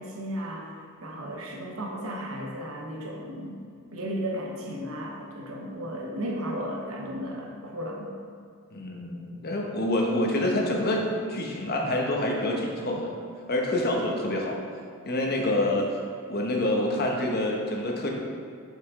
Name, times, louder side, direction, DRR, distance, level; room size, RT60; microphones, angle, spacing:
voice 1, 0.0-3.6 3.9-8.1, equal, 65° right, -1 dB, 0.8 m, -34 dB
voice 2, 8.7-13.1 13.5-14.6 15.1-15.9 16.3-18.1, left 1 dB, 45° left, 0 dB, 0.9 m, -27 dB
6.6 x 5.1 x 3.7 m, 2.2 s
head